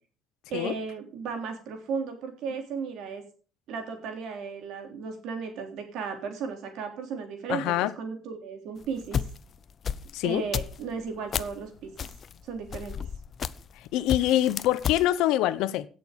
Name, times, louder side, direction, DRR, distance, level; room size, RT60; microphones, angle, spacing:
voice 1, 0.5-3.2 3.7-9.2 10.2-11.9 12.4-13.0, right 5 dB, 60° right, 3.5 m, -35 dB
voice 2, 7.5-7.9 10.1-10.4 13.9-15.9, left 13 dB, 75° left, 0.8 m, -25 dB
sound 1, 8.8-11.6 12.0-13.8 14.1-15.0, left 7 dB, 30° left, 0.6 m, -32 dB
16.5 x 6.9 x 5.3 m
cardioid pair, 160°, 0 cm